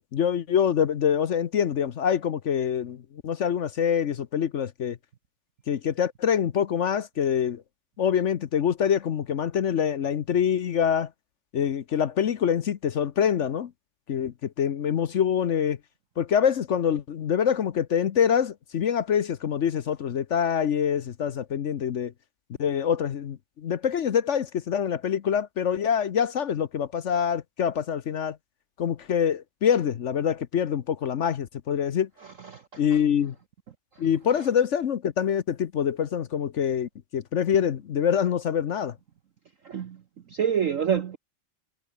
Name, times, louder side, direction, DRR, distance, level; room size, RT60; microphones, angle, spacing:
voice 1, 0.0-5.0 5.7-7.6 8.0-11.1 11.5-13.7 14.1-15.8 16.2-22.1 22.6-28.4 28.8-32.1 32.8-33.3 34.0-38.9, left 8 dB, 60° left, 0.8 m, -25 dB
voice 2, 32.2-33.0 34.0-34.1 39.6-40.0 40.3-41.2, right 8 dB, 55° right, 1.0 m, -28 dB
omnidirectional pair, 2.2 m